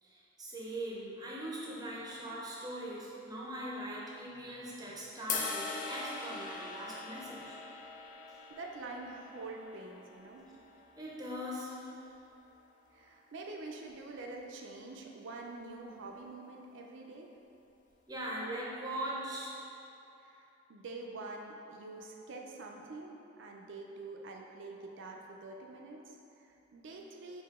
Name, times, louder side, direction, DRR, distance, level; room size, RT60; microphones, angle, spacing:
voice 1, 0.0-7.6 8.3-8.4 11.0-12.0 18.1-19.6 21.9-22.0 24.8-24.9 25.6-25.7, right 1 dB, 20° right, -5 dB, 0.6 m, -41 dB
sound 1, 5.3-11.5, left 4 dB, 40° left, 0.4 m, -42 dB
voice 2, 8.2-10.5 12.9-17.3 20.2-27.4, right 3 dB, 65° right, 1 dB, 0.4 m, -46 dB
4.8 x 2.7 x 3.5 m, 2.8 s
head